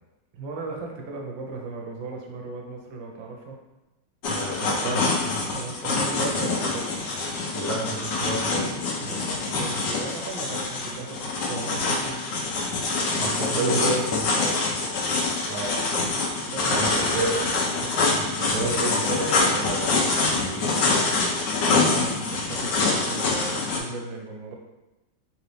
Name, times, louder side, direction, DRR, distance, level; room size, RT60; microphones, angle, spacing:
voice 1, 0.3-3.5 5.4-6.9 9.0-12.8 13.2-14.1 16.4-17.2 17.8-18.2 21.8-24.6, right 3 dB, 85° right, 1 dB, 1.4 m, -36 dB
sound 1, 4.2-23.8, left 3 dB, 75° left, 1.3 m, -25 dB
voice 2, 4.3-5.4 7.5-8.8 13.2-14.6 15.5-15.8 16.7-17.4 18.1-21.1, right 2 dB, 65° right, -1 dB, 1.0 m, -30 dB
3.9 x 2.9 x 3.2 m, 1.0 s
omnidirectional pair, 2.0 m